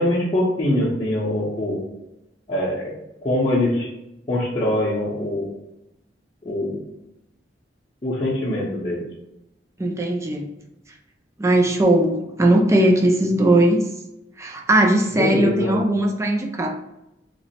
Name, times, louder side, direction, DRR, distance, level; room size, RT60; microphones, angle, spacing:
voice 1, 0.0-1.8 2.5-2.9 3.2-3.9 4.3-5.5 6.4-6.8 8.0-9.0 15.2-15.8, left 1 dB, 30° left, -8 dB, 0.7 m, -23 dB
voice 2, 9.8-10.5 11.4-13.9 14.4-16.7, right 1 dB, 15° right, 2 dB, 0.4 m, -19 dB
2.9 x 2.0 x 4.1 m, 0.89 s
head